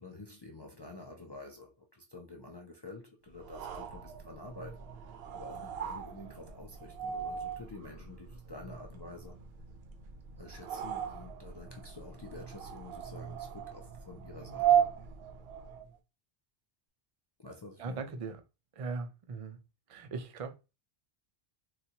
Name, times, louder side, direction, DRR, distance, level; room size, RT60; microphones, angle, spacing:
voice 1, 0.0-9.4 10.4-14.8 17.4-18.0, left 2 dB, 40° left, 0.3 m, -49 dB
sound 1, 3.4-15.9, right 9 dB, 75° right, 0.8 m, -36 dB
voice 2, 17.8-18.4 18.7-19.6 19.9-20.6, right 4 dB, 55° right, 0.4 m, -39 dB
3.9 x 2.2 x 2.8 m
omnidirectional pair, 1.1 m